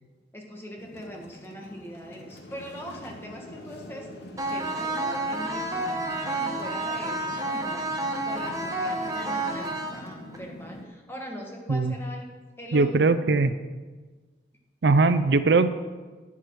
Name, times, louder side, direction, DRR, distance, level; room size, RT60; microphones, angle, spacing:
voice 1, 0.3-4.1 4.4-5.9 6.4-8.0 8.2-12.3 12.6-13.1, equal, 15° left, 0 dB, 1.5 m, -41 dB
sound 1, 0.8-10.9, left 1 dB, 75° left, 1.1 m, -44 dB
sound 2, 4.4-10.4, right 2 dB, 20° right, 1.1 m, -30 dB
voice 2, 12.7-13.5 14.8-15.7, right 3 dB, 75° right, 12 dB, 0.5 m, -20 dB
11.0 x 9.6 x 4.7 m, 1.3 s
head